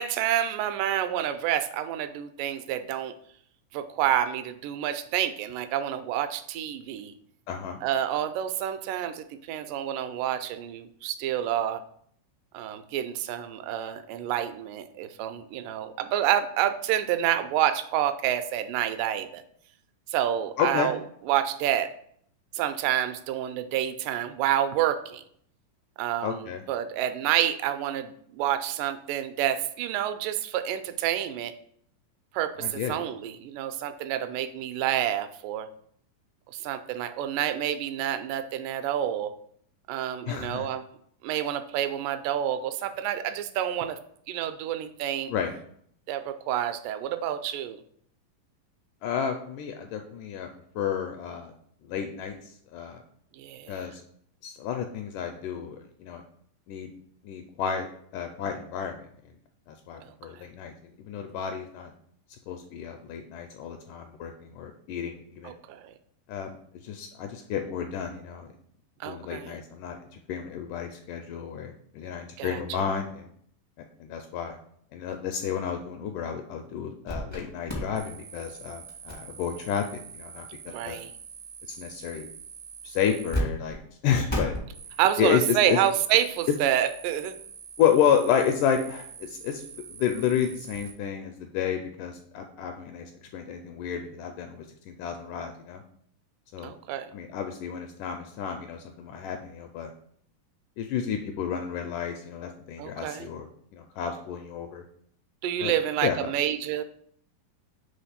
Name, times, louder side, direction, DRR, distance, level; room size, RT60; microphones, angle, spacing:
voice 1, 0.0-3.1 3.7-7.1 7.8-11.8 12.5-19.4 20.1-21.0 21.3-21.9 22.5-25.2 26.0-31.5 32.3-35.7 36.5-39.3 39.9-40.8 41.2-44.0 44.3-45.3 46.1-47.8 53.4-53.7 65.4-65.9 69.0-69.6 72.4-72.8 80.7-81.1 85.0-87.4 96.6-97.1 102.8-103.3 105.4-106.8, right 11 dB, 80° right, 10 dB, 2.0 m, -28 dB
voice 2, 7.5-7.8 20.6-20.9 26.2-26.6 32.6-33.0 40.3-40.7 45.3-45.5 49.0-50.5 50.8-51.5 51.8-53.0 53.7-54.0 54.4-56.2 56.7-56.9 57.2-57.9 58.1-59.1 59.7-60.7 61.0-61.9 62.5-65.5 66.3-66.6 66.8-68.5 69.0-73.3 73.8-74.6 74.9-79.8 80.1-81.0 81.7-82.3 82.8-84.5 85.2-85.8 87.8-89.6 89.9-95.8 96.5-96.7 97.1-99.9 100.8-104.8 105.6-105.7 106.0-106.3, left 8 dB, 80° left, 5 dB, 1.9 m, -30 dB
sound 1, 77.1-77.4 77.7-83.4 83.7-83.8 84.3-90.9, right 1 dB, 35° left, 0.4 m, -39 dB
5.1 x 3.4 x 5.7 m, 0.64 s
omnidirectional pair, 4.0 m